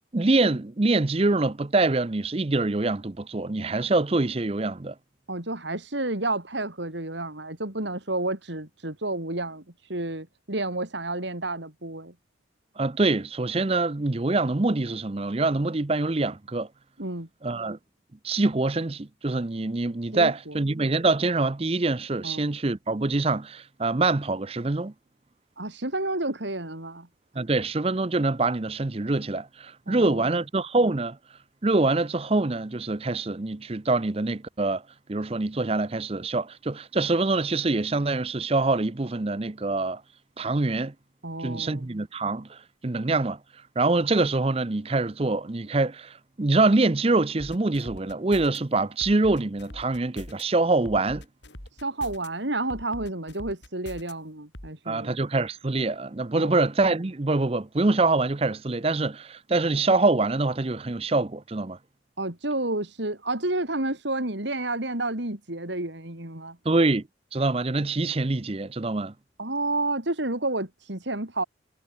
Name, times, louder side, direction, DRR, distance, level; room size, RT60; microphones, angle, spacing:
voice 1, 0.1-4.9 12.8-16.7 17.4-17.8 18.2-24.9 27.3-31.2 31.6-34.8 35.1-40.0 40.4-40.9 41.4-43.4 43.8-51.2 54.9-61.8 66.6-67.0 67.3-69.1, right 2 dB, 30° right, 0.6 m, -25 dB
voice 2, 5.3-9.6 9.9-12.1 17.0-17.3 20.1-20.6 22.2-22.4 25.6-27.1 29.9-30.4 41.2-41.9 51.8-55.1 56.3-56.7 62.2-66.6 69.4-71.4, right 2 dB, 70° right, 3.9 m, -30 dB
sound 1, 47.4-48.6 49.0-50.4 50.9-52.3 52.7-54.1 54.5-54.7, left 1 dB, 65° left, 6.3 m, -42 dB
head